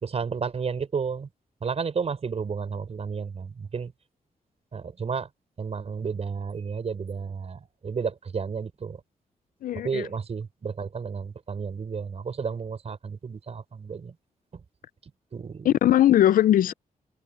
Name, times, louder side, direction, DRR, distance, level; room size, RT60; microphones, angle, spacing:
voice 1, 0.0-1.3 1.6-3.9 4.7-5.3 5.6-9.0 9.7-14.1 15.3-15.7, right 5 dB, 45° right, 5.0 m, -32 dB
voice 2, 9.6-10.1 15.6-16.7, left 12 dB, 75° left, 0.4 m, -20 dB
wide cardioid pair, 120°, 14 cm